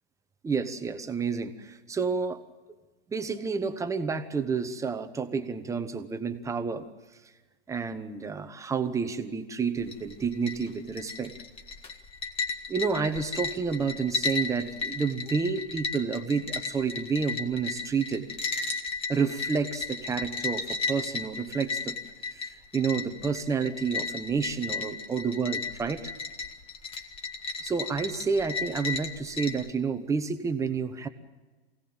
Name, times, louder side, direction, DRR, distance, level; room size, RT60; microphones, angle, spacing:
voice 1, 0.4-2.4 3.1-6.8 7.7-11.3 12.7-18.3 19.1-22.0 22.3-26.1 27.6-31.1, right 5 dB, 10° right, 10 dB, 1.1 m, -30 dB
sound 1, 9.8-29.7, left 4 dB, 15° left, 1.7 m, -35 dB
24.5 x 17.0 x 8.9 m, 1.2 s
hypercardioid pair, 145°, 33 cm